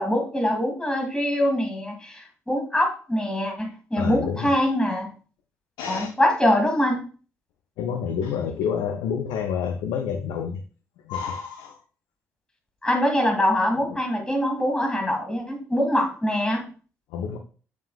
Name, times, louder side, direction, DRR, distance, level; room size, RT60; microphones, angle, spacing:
voice 1, 0.0-5.1 5.9-7.0 12.8-16.7, left 1 dB, 10° left, 1 dB, 2.6 m, -23 dB
voice 2, 4.0-4.5 5.8-6.1 7.8-10.6 11.0-11.8 13.7-14.0 17.1-17.4, left 7 dB, 65° left, 5 dB, 0.7 m, -29 dB
8.2 x 6.8 x 2.3 m, 0.39 s
figure-of-eight pair, 45°, 8 cm